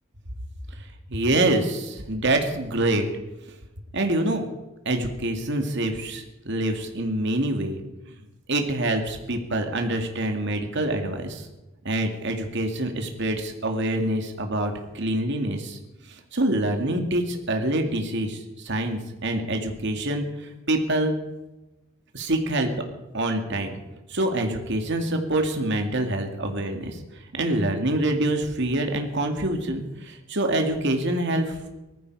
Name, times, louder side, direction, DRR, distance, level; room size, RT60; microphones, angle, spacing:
voice 1, 0.8-3.0 3.9-4.4 4.9-7.8 8.1-8.2 8.5-11.5 11.8-15.8 16.0-21.1 22.1-22.7 23.1-23.7 24.1-31.7, right 1 dB, 60° right, 4 dB, 2.3 m, -26 dB
19.5 x 14.0 x 4.8 m, 1.0 s
head